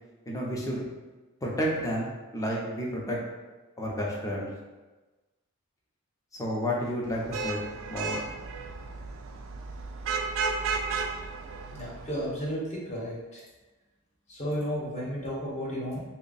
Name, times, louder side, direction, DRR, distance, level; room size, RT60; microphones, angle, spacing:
voice 1, 0.3-0.8 1.4-3.2 3.8-4.5 6.4-7.6 7.9-8.2, equal, 15° left, -3 dB, 0.6 m, -31 dB
Vehicle horn car horn honking / Traffic noise roadway noise, 7.1-12.4, right 4 dB, 60° right, 0.4 m, -34 dB
voice 2, 11.7-13.4 14.3-16.0, equal, 30° left, -5 dB, 1.0 m, -33 dB
3.4 x 2.2 x 4.0 m, 1.2 s
head